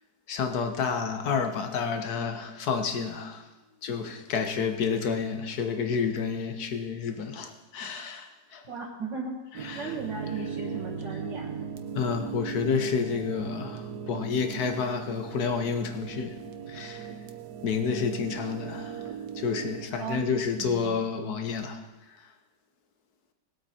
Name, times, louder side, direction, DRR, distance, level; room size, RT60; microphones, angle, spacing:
voice 1, 0.3-3.5 3.8-8.6 9.6-10.0 11.9-17.1 17.6-21.8 22.2-22.3, left 5 dB, 60° left, 6 dB, 1.6 m, -30 dB
voice 2, 8.7-9.3 9.7-11.5 18.0-18.3 20.0-20.3 20.6-21.1, right 4 dB, 85° right, -4 dB, 2.2 m, -36 dB
sound 1, 9.5-19.9, right 7 dB, 65° right, 1.4 m, -38 dB
20.0 x 8.5 x 4.3 m, 1.1 s
omnidirectional pair, 1.9 m